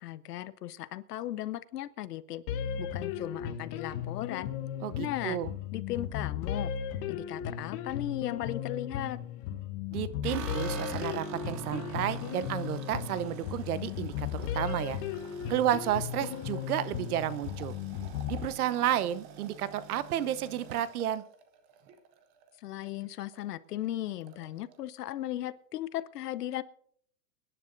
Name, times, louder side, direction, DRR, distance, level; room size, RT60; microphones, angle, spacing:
voice 1, 0.0-2.4 2.8-4.5 5.0-5.4 5.7-6.7 7.1-9.2 22.6-26.6, left 13 dB, 70° left, 16 dB, 0.8 m, -36 dB
sound 1, 2.5-18.5, left 9 dB, 30° left, 1.0 m, -36 dB
voice 2, 4.8-5.5 9.9-15.0 15.5-17.8 18.3-21.2, right 11 dB, 65° right, 15 dB, 0.9 m, -31 dB
sound 2, 10.2-22.5 22.8-23.4 23.7-23.8 24.1-24.8, right 7 dB, 15° right, 0.4 m, -46 dB
28.5 x 10.0 x 2.6 m, 0.65 s
hypercardioid pair, 145°, 49 cm